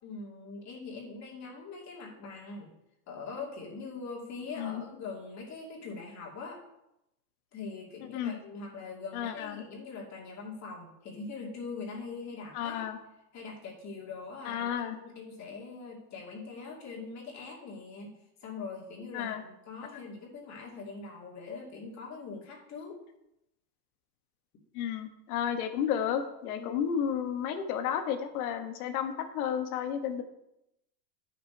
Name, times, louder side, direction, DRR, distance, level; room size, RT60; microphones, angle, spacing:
voice 1, 0.0-2.7 3.1-6.6 7.5-12.9 13.3-18.1 18.4-23.0 26.5-26.8, left 4 dB, 35° left, -2 dB, 2.6 m, -42 dB
voice 2, 9.1-9.6 12.5-13.0 14.4-15.0 19.1-19.4 24.7-30.2, left 8 dB, 60° left, 7 dB, 1.4 m, -32 dB
9.4 x 6.1 x 4.6 m, 0.86 s
hypercardioid pair, 115°, 49 cm